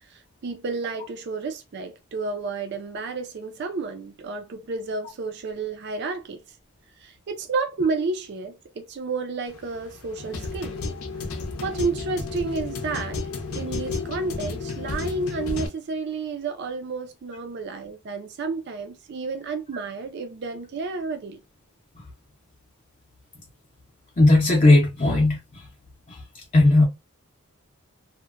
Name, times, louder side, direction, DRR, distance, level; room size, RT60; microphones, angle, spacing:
voice 1, 0.4-6.4 7.0-10.8 11.6-13.2 13.5-21.4, right 4 dB, 50° right, 0.4 m, -31 dB
sound 1, 9.5-15.7, left 3 dB, 80° left, 0.6 m, -32 dB
voice 2, 24.2-25.4 26.1-26.2 26.5-26.9, left 2 dB, 35° left, 0.5 m, -17 dB
2.8 x 2.1 x 2.4 m
head